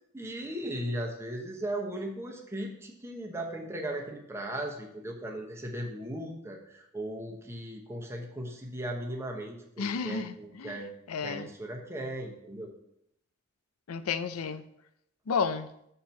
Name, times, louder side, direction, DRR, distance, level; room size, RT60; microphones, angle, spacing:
voice 1, 0.1-10.9 11.2-12.7, right 1 dB, 10° right, 0.9 m, -37 dB
voice 2, 9.8-10.8 11.1-11.5 13.9-14.6 15.3-15.7, left 5 dB, 85° left, 0.5 m, -32 dB
6.6 x 4.5 x 5.7 m
head